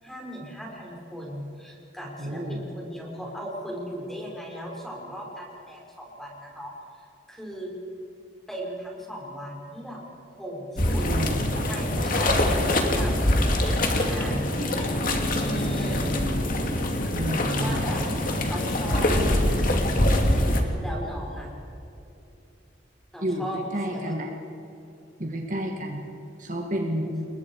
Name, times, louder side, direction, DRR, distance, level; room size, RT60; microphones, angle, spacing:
voice 1, 0.0-6.7 7.3-7.7 8.5-13.1 13.6-14.9 15.4-16.2 17.1-17.3 17.6-19.1 19.9-20.5 20.8-21.5 23.1-23.6 23.9-24.0 27.0-27.1, equal, ahead, -2 dB, 5.4 m, -37 dB
voice 2, 2.2-2.6 11.0-11.6 17.1-17.8 23.2-24.3 25.2-26.1 26.4-27.3, equal, 45° right, 1 dB, 2.1 m, -30 dB
sound 1, 10.8-20.6, left 1 dB, 45° left, 2.5 m, -24 dB
30.0 x 22.0 x 4.9 m, 2.8 s
head